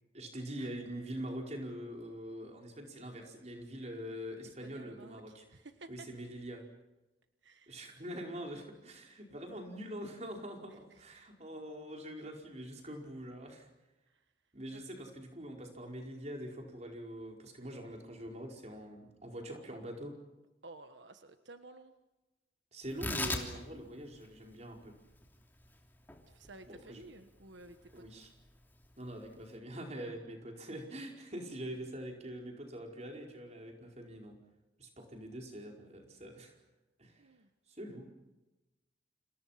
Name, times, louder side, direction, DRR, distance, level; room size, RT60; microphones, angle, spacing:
voice 1, 0.1-5.4 5.9-6.6 7.7-13.7 14.5-20.1 22.7-24.9 26.7-27.0 27.9-28.3 29.0-34.4 34.8-36.5 37.0-37.2 37.7-38.1, right 1 dB, 40° right, 1 dB, 4.9 m, -44 dB
voice 2, 4.4-6.1 7.4-7.8 10.7-11.2 14.1-14.2 14.7-15.0 20.6-21.9 26.3-28.2 37.2-37.5, right 2 dB, 85° right, 8 dB, 1.4 m, -54 dB
Tearing, 22.8-29.6, left 2 dB, 10° left, 3.0 m, -43 dB
30.0 x 28.0 x 5.9 m, 1.0 s
head